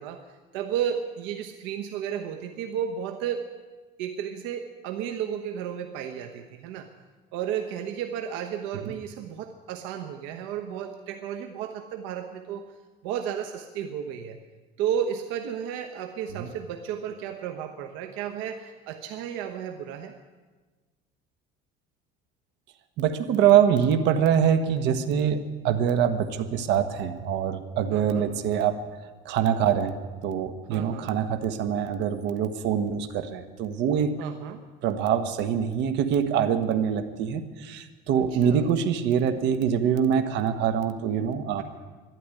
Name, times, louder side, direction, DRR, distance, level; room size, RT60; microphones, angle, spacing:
voice 1, 0.0-3.5 4.0-6.9 7.3-12.7 13.0-14.4 14.8-20.1 27.9-28.3 30.7-31.1 34.2-34.6 38.1-38.7, right 9 dB, 80° right, 5 dB, 1.1 m, -33 dB
voice 2, 23.0-28.8 29.2-29.9 30.2-34.1 34.8-41.6, right 8 dB, 65° right, 8 dB, 1.4 m, -24 dB
12.5 x 11.5 x 9.8 m, 1.3 s
cardioid pair, 145°, 20 cm